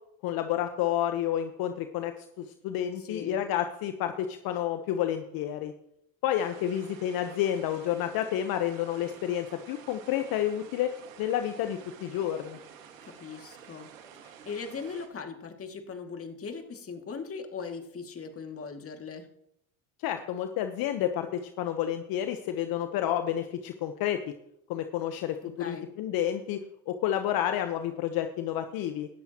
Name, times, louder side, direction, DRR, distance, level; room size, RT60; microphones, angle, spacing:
voice 1, 0.2-5.7 6.2-12.6 20.0-24.2 24.7-29.1, left 11 dB, 65° left, 7 dB, 1.2 m, -30 dB
voice 2, 3.0-3.4 13.0-13.9 14.2-19.3 25.4-25.9, left 5 dB, 35° left, 4 dB, 2.4 m, -39 dB
sound 1, 6.3-15.1, right 8 dB, 90° right, 2.0 m, -50 dB
18.0 x 13.0 x 3.0 m, 0.77 s
hypercardioid pair, 70°, 38 cm